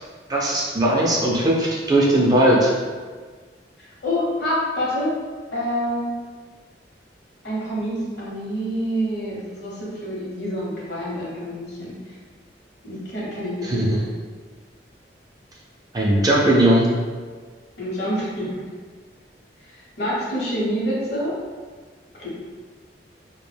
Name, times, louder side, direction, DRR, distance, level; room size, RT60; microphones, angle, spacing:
voice 1, 0.3-2.7 13.6-14.0 15.9-16.9, right 1 dB, 20° right, -4 dB, 0.4 m, -18 dB
voice 2, 3.8-5.1 5.5-6.1 7.4-12.2 12.8-14.0 17.8-18.5 19.7-21.3 22.2-22.3, equal, 65° left, -6 dB, 0.8 m, -27 dB
2.2 x 2.1 x 3.2 m, 1.5 s
head